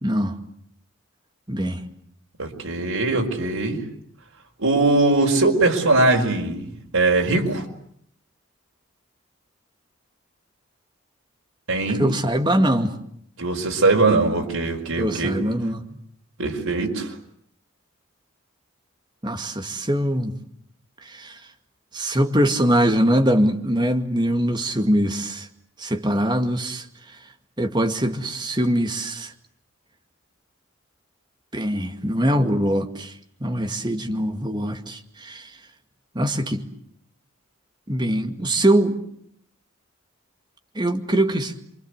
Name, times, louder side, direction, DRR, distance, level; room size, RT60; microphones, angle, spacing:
voice 1, 0.0-0.4 1.5-1.8 12.0-12.9 15.0-15.8 19.2-20.4 21.1-21.3 21.9-25.5 25.8-26.8 27.6-29.3 31.5-33.1 33.4-35.5 36.1-36.7 37.9-39.0 40.8-41.5, right 1 dB, 20° right, 2.2 m, -22 dB
voice 2, 2.4-3.8 4.6-7.6 11.7-12.1 13.4-15.3 16.4-17.1, right 2 dB, 85° right, 5.1 m, -21 dB
28.0 x 24.5 x 8.2 m
head